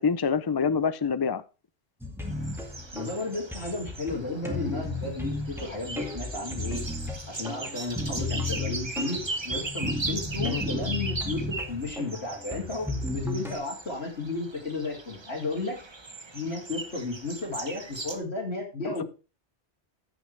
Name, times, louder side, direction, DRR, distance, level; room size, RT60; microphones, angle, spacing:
voice 1, 0.0-1.4 10.5-10.6 18.8-19.0, left 6 dB, 35° left, 15 dB, 0.4 m, -26 dB
sound 1, 2.0-13.6, left 2 dB, ahead, 2.0 m, -34 dB
sound 2, 2.2-18.2, right 3 dB, 25° right, 1.0 m, -38 dB
voice 2, 2.9-6.8 7.3-15.8 16.3-19.0, left 3 dB, 85° left, -2 dB, 3.0 m, -33 dB
15.0 x 6.3 x 3.3 m, 0.32 s
omnidirectional pair, 1.1 m